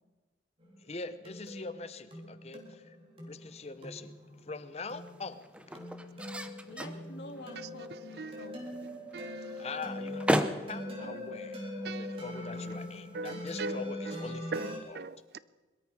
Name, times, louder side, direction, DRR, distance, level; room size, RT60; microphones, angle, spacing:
sound 1, 0.6-14.8, left 1 dB, 30° right, 2.9 m, -42 dB
voice 1, 0.8-3.0 3.3-4.1 4.5-5.5 9.6-15.0, left 3 dB, 35° left, 0.8 m, -43 dB
sound 2, 3.4-13.7, equal, 5° right, 0.7 m, -39 dB
voice 2, 6.7-8.9 12.5-13.1, left 1 dB, 70° left, 2.1 m, -49 dB
voice 3, 7.9-8.6 9.1-9.7 11.0-11.3 11.8-12.2 13.1-15.4, right 3 dB, 60° right, 0.5 m, -41 dB
21.5 x 13.0 x 4.8 m
head